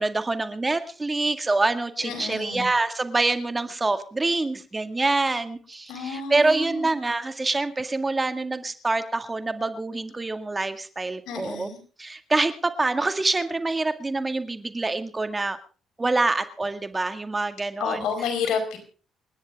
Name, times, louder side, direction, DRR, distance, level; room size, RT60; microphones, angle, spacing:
voice 1, 0.0-11.7 12.0-15.6 16.0-18.1, right 3 dB, 20° right, 9 dB, 1.9 m, -26 dB
voice 2, 2.0-2.7 5.9-6.9 11.3-11.8 17.8-18.8, left 6 dB, 85° left, 4 dB, 4.9 m, -30 dB
29.0 x 10.5 x 3.6 m, 0.39 s
cardioid pair, 90°, 0 cm